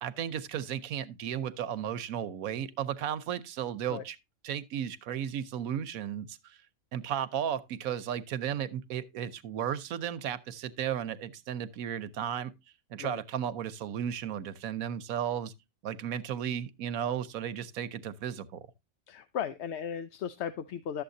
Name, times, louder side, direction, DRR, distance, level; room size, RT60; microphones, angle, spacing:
voice 1, 0.0-4.2 4.4-6.6 6.9-12.5 12.9-15.5 15.8-18.6, right 9 dB, 90° right, 1.2 m, -34 dB
voice 2, 19.1-21.0, left 8 dB, 60° left, 0.8 m, -36 dB
12.0 x 7.7 x 2.6 m
omnidirectional pair, 1.4 m